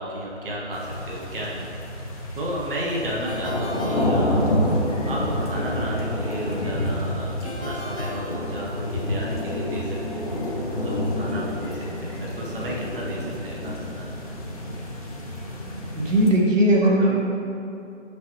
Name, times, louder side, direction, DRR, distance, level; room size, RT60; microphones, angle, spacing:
voice 1, 0.0-1.7 2.3-10.2 10.7-14.1 16.8-17.2, right 1 dB, 45° right, -4 dB, 1.2 m, -33 dB
sound 1, 0.7-16.3, left 1 dB, 30° left, 0.8 m, -28 dB
Ringtone, 3.2-4.9 7.4-9.1, left 2 dB, 45° left, 1.4 m, -38 dB
voice 2, 16.0-17.2, right 1 dB, 90° right, -3 dB, 1.7 m, -18 dB
8.3 x 6.2 x 3.1 m, 2.8 s
figure-of-eight pair, 165°, 37 cm